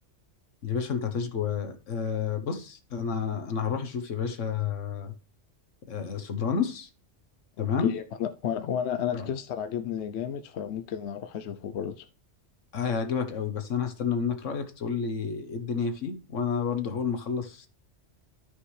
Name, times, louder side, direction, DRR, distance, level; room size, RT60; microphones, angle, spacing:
voice 1, 0.6-5.1 5.9-6.9 7.6-7.9 9.1-9.3 12.7-17.7, left 6 dB, 85° left, 1.5 m, -30 dB
voice 2, 7.6-12.0, left 9 dB, 70° left, 0.9 m, -32 dB
13.0 x 5.3 x 3.3 m
omnidirectional pair, 1.2 m